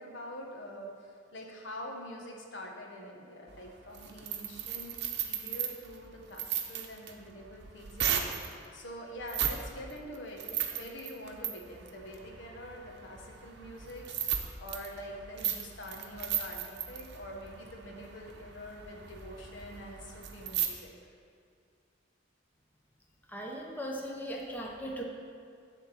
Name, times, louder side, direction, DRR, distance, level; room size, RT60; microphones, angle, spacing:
voice 1, 0.0-4.9 5.2-20.9, equal, 65° left, 0 dB, 1.2 m, -45 dB
sound 1, 3.5-8.5 9.2-9.6 9.9-20.7, right 9 dB, 60° right, 0.8 m, -36 dB
voice 2, 23.3-25.0, equal, 10° left, -1 dB, 0.8 m, -38 dB
10.5 x 3.7 x 7.3 m, 2.4 s
head